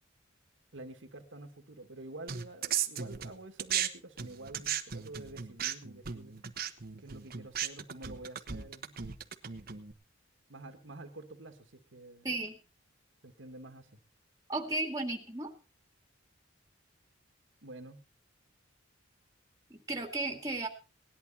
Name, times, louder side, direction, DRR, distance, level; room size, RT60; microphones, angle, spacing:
voice 1, 0.7-6.3 7.0-9.0 10.5-12.3 13.2-13.9 17.6-18.0, right 2 dB, 70° right, 6 dB, 1.7 m, -48 dB
sound 1, 2.3-3.9 4.2-9.9, right 9 dB, 50° right, 1.1 m, -36 dB
voice 2, 12.2-12.6 14.5-15.5 19.7-20.7, right 2 dB, 15° right, 3 dB, 2.4 m, -34 dB
18.5 x 11.0 x 4.2 m, 0.32 s
head